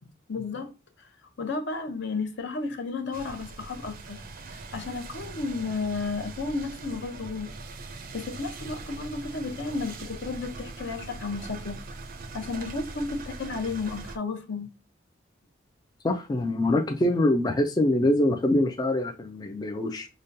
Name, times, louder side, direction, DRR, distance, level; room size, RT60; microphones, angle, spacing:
voice 1, 0.3-0.7 1.4-4.2 4.5-7.5 8.1-11.8 12.3-14.7, left 4 dB, 65° left, 0.7 m, -33 dB
sound 1, 3.1-14.2, right 3 dB, 50° right, 0.5 m, -41 dB
voice 2, 16.0-20.1, left 1 dB, 20° left, 0.3 m, -24 dB
5.0 x 2.2 x 2.6 m
head